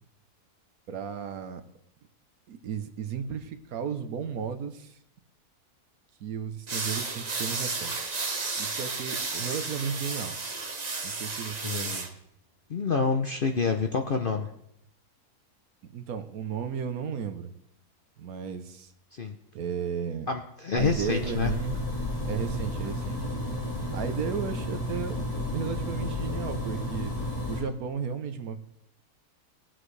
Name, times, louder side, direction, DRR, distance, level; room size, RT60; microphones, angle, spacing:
voice 1, 0.9-1.6 2.5-5.0 6.2-7.9 8.6-10.4 11.0-12.1 15.9-17.5 18.2-18.9 19.5-20.3 20.7-21.8 22.3-23.3 23.9-27.1 27.5-28.6, right 7 dB, 70° right, 9 dB, 1.3 m, -34 dB
sound 1, 6.7-12.1, right 3 dB, 30° right, 0.9 m, -33 dB
voice 2, 12.7-14.5 19.1-19.4 20.3-21.5, left 4 dB, 50° left, 5 dB, 0.7 m, -27 dB
sound 2, 20.8-27.6, left 1 dB, 15° left, 4.0 m, -32 dB
19.5 x 7.9 x 3.2 m, 0.74 s
omnidirectional pair, 1.7 m